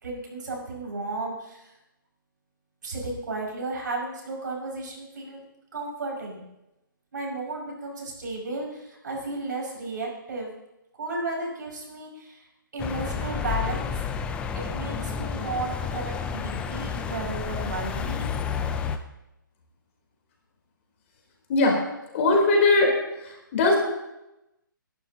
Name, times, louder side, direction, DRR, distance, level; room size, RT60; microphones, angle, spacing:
voice 1, 0.0-1.7 2.8-5.4 5.7-6.4 7.1-10.5 11.0-12.5 12.7-13.8 14.5-18.3, right 2 dB, 60° right, -1 dB, 5.9 m, -33 dB
sound 1, 12.8-19.0, left 6 dB, 10° left, 0.5 m, -30 dB
voice 2, 22.1-22.9 23.5-23.8, left 2 dB, 35° left, 0 dB, 3.6 m, -19 dB
26.5 x 12.0 x 2.9 m, 0.91 s
hypercardioid pair, 150°, 11 cm